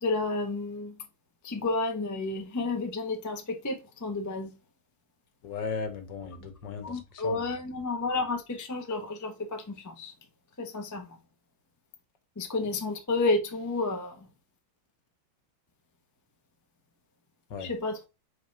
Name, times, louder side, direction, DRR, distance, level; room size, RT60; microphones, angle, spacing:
voice 1, 0.0-0.9 1.4-4.5 6.8-10.1 10.6-11.1 12.4-14.3 17.6-18.1, left 3 dB, 25° left, 0.4 m, -31 dB
voice 2, 5.4-7.4 17.5-17.7, left 5 dB, 65° left, 1.7 m, -36 dB
4.9 x 4.1 x 5.6 m
omnidirectional pair, 2.2 m